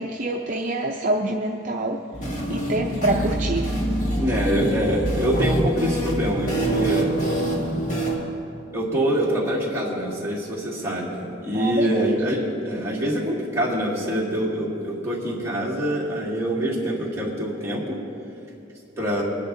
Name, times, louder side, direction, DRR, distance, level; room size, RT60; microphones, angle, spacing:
voice 1, 0.0-2.0 2.5-3.7 11.5-12.1, right 2 dB, 40° right, 1 dB, 0.6 m, -26 dB
sound 1, 2.1-8.2, right 1 dB, 40° left, 1.9 m, -25 dB
voice 2, 4.1-7.1 8.7-18.0 19.0-19.2, equal, 15° right, -6 dB, 2.3 m, -25 dB
23.0 x 10.5 x 2.7 m, 2.7 s
head